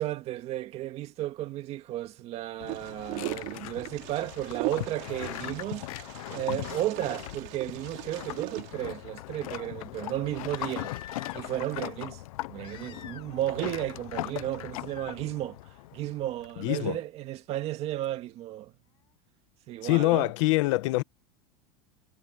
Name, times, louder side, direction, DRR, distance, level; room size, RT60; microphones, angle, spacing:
voice 1, 0.0-5.9 6.3-10.9 11.3-12.2 12.5-15.6 15.9-18.7 19.7-20.3, right 14 dB, 35° right, 1.9 m, -33 dB
sound 1, 2.6-16.8, left 18 dB, 80° left, 0.6 m, -39 dB
Wind, 2.7-8.7, right 30 dB, 55° right, 5.7 m, -40 dB
Crying sobbing, 10.3-11.7 12.6-13.5 13.7-14.2 14.9-15.2 16.8-16.9, left 10 dB, 30° left, 2.0 m, -48 dB
voice 2, 16.6-17.0 19.8-21.0, left 21 dB, 60° left, 1.4 m, -24 dB
supercardioid pair, 160°, 18 cm